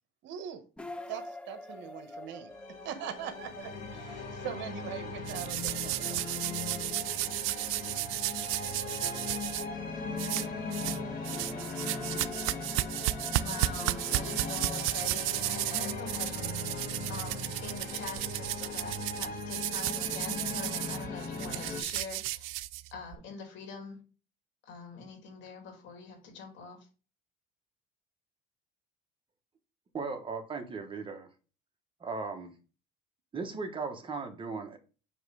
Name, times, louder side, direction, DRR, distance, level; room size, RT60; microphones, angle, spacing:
voice 1, 0.2-0.6 1.1-6.8, right 9 dB, 65° right, 9 dB, 1.1 m, -42 dB
sound 1, 0.8-19.9, left 2 dB, 5° left, 0.4 m, -48 dB
sound 2, 2.5-21.8, left 3 dB, 50° left, 1.7 m, -39 dB
sound 3, 5.3-9.6 10.2-11.0 11.2-23.1, right 18 dB, 80° right, 0.4 m, -34 dB
voice 2, 13.4-22.5 22.9-24.0 24.6-26.9, left 5 dB, 65° left, 3 dB, 2.5 m, -44 dB
voice 3, 29.9-31.3 32.0-32.5 33.3-34.8, right 4 dB, 25° right, 4 dB, 1.1 m, -37 dB
7.2 x 3.2 x 4.8 m, 0.34 s
cardioid pair, 130°, 21 cm